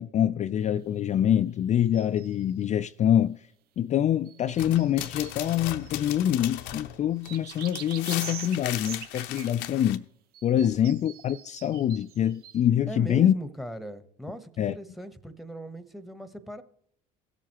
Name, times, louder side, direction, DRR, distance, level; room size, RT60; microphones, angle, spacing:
voice 1, 0.0-3.4 3.8-10.0 10.4-13.3 14.6-14.8, left 10 dB, 40° left, 0.4 m, -25 dB
sound 1, 1.8-2.5 4.3-6.5 7.2-9.5 10.3-12.6, right 11 dB, 55° right, 0.7 m, -44 dB
sound 2, 4.5-10.0, left 13 dB, 70° left, 0.7 m, -37 dB
voice 2, 12.9-16.6, right 1 dB, ahead, 1.1 m, -39 dB
17.5 x 7.5 x 3.0 m
hypercardioid pair, 75°, 19 cm